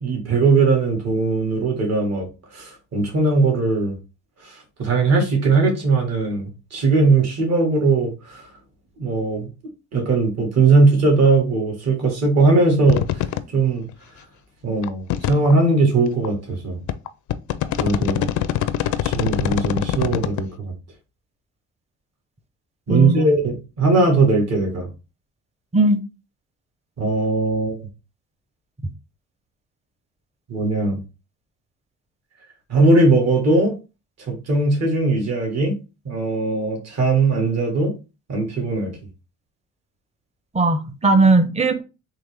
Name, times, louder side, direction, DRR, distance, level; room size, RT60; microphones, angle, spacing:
voice 1, 0.0-2.3 2.5-3.9 4.4-8.5 9.0-9.5 9.9-13.2 13.5-13.8 14.6-16.8 17.8-18.3 19.0-20.7 22.9-24.9 27.0-27.9 30.5-31.0 32.7-33.8 34.3-35.7 36.1-37.9 38.3-39.0, right 3 dB, 60° right, 1.9 m, -19 dB
sound 1, 12.9-13.4 13.9-14.0 14.8-15.5 16.2-16.3 16.9-20.4, left 12 dB, 75° left, 0.5 m, -23 dB
voice 2, 22.9-23.4 25.7-26.0 40.5-41.8, right 2 dB, 20° right, 0.7 m, -17 dB
3.8 x 3.0 x 3.4 m
cardioid pair, 90°, 30 cm